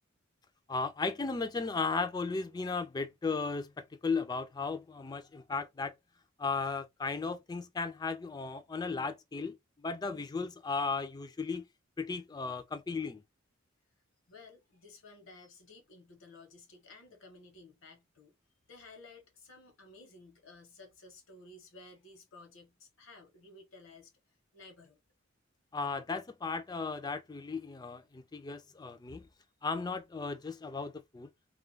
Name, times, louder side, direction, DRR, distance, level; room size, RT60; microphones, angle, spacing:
voice 1, 0.7-5.9 6.4-9.6 9.8-11.6 12.0-13.2 25.7-29.2 29.6-31.3, left 4 dB, 20° left, 0.3 m, -35 dB
voice 2, 14.3-18.3 18.7-24.1 24.5-25.0, left 3 dB, 80° left, 1.0 m, -55 dB
2.3 x 2.2 x 3.1 m
head